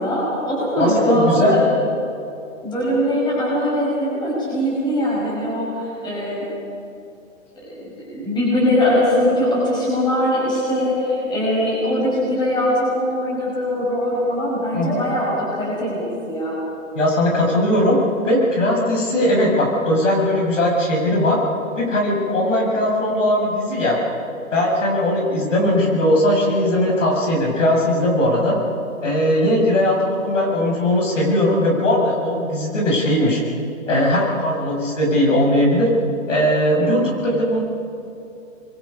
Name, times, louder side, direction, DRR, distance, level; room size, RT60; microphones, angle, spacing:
voice 1, 0.0-1.6 2.6-6.4 7.6-16.5, equal, 10° left, -5 dB, 5.7 m, -21 dB
voice 2, 0.8-1.6 14.7-15.0 17.0-18.0 18.2-21.4 21.8-24.0 24.5-28.6 29.0-33.4 33.9-35.9 36.3-37.6, left 1 dB, 65° left, -1 dB, 6.9 m, -19 dB
26.5 x 22.5 x 5.4 m, 2.7 s
hypercardioid pair, 155°, 40 cm